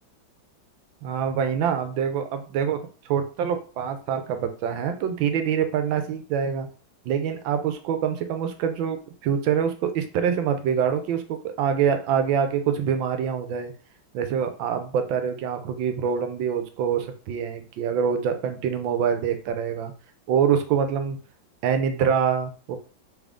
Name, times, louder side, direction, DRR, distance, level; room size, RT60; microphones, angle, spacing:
voice 1, 1.0-2.8 3.1-6.7 7.0-9.0 9.2-13.7 14.1-19.9 20.3-21.2 21.6-22.8, right 7 dB, 90° right, 8 dB, 1.4 m, -25 dB
3.8 x 3.5 x 3.6 m, 0.39 s
omnidirectional pair, 2.1 m